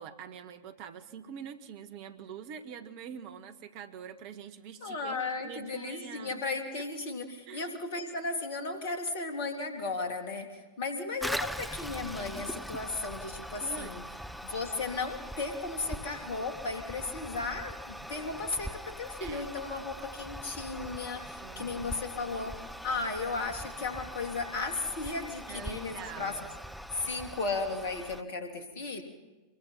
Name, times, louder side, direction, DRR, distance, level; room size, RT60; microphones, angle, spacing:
voice 1, 0.0-6.4 6.7-6.9 7.5-7.7 13.6-13.9 19.2-19.5 21.4-22.0 25.5-26.5, right 8 dB, 45° right, 9 dB, 1.6 m, -45 dB
voice 2, 4.8-14.0 14.4-26.5 26.9-29.0, left 3 dB, 55° left, 6 dB, 3.1 m, -35 dB
Toilet flush, 11.2-28.2, equal, ahead, 1.0 m, -42 dB
26.5 x 22.0 x 5.8 m, 1.2 s
figure-of-eight pair, 90°, 0 cm